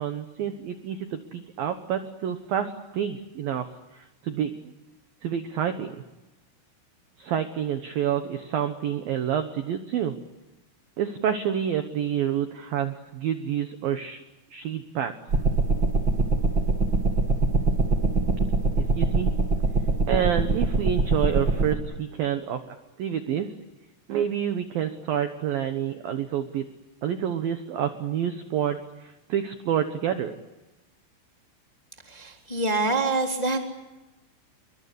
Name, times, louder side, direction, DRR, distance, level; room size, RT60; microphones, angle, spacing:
voice 1, 0.0-3.7 3.9-4.7 5.2-6.0 7.2-10.2 11.0-14.2 14.5-15.1 18.8-19.3 20.1-22.6 23.0-23.5 24.1-26.7 27.0-30.4, right 9 dB, 70° right, 8 dB, 2.3 m, -28 dB
sound 1, 15.3-21.8, right 3 dB, 30° right, 2.4 m, -23 dB
voice 2, 32.1-33.6, right 3 dB, 10° left, 2 dB, 2.0 m, -25 dB
29.0 x 23.5 x 8.4 m, 1.1 s
omnidirectional pair, 5.8 m